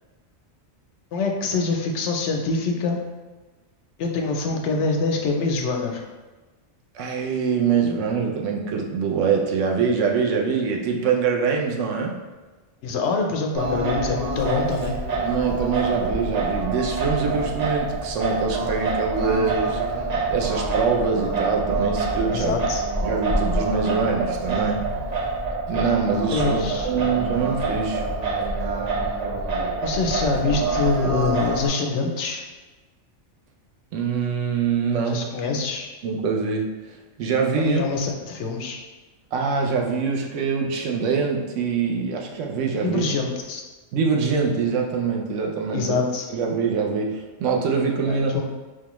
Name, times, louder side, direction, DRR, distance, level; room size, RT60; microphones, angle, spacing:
voice 1, 1.1-3.0 4.0-6.0 12.8-15.0 22.3-22.8 26.3-26.9 29.8-32.4 35.1-35.9 37.6-38.8 42.8-43.6 45.7-46.3 48.0-48.4, left 4 dB, 75° left, 2 dB, 0.9 m, -25 dB
voice 2, 6.9-12.2 15.2-22.6 23.0-24.8 25.7-28.0 33.9-35.3 36.0-37.8 39.3-43.1 43.9-46.0 46.3-48.4, right 5 dB, 90° right, 1 dB, 1.0 m, -24 dB
Singing, 13.5-31.7, right 3 dB, 50° right, 0.5 m, -26 dB
4.7 x 2.3 x 3.0 m, 1.2 s
omnidirectional pair, 1.2 m